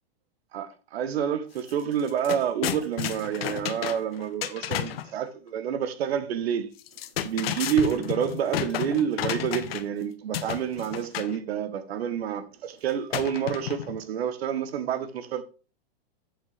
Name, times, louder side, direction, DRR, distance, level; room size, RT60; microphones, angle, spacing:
voice 1, 0.5-6.7 7.2-15.4, right 8 dB, 85° right, 1.1 m, -28 dB
sound 1, 1.6-1.7 2.0-5.1 6.8-10.0 10.3-11.4 13.1-14.0, left 11 dB, 75° left, 1.0 m, -32 dB
8.1 x 7.7 x 3.2 m
supercardioid pair, 170°, 31 cm